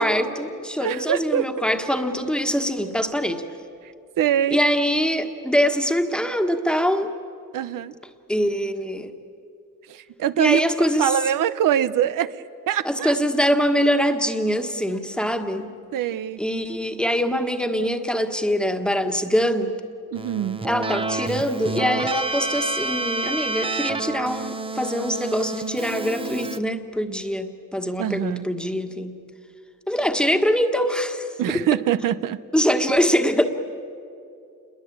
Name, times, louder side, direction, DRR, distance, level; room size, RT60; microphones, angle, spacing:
voice 1, 0.0-3.4 4.5-7.1 8.3-9.1 10.4-11.2 12.8-15.7 16.4-19.8 20.6-29.2 29.9-31.3 32.5-33.4, equal, 5° left, 5 dB, 1.5 m, -23 dB
voice 2, 0.8-1.5 4.2-4.6 7.5-7.9 9.9-10.6 11.0-12.3 12.7-13.2 15.9-16.4 20.1-20.6 28.0-28.4 31.4-32.4, right 10 dB, 90° right, 14 dB, 0.8 m, -23 dB
Keyboard (musical), 20.2-26.6, right 3 dB, 15° right, 0.8 m, -29 dB
29.0 x 22.0 x 8.7 m, 2.5 s
wide cardioid pair, 155°, 32 cm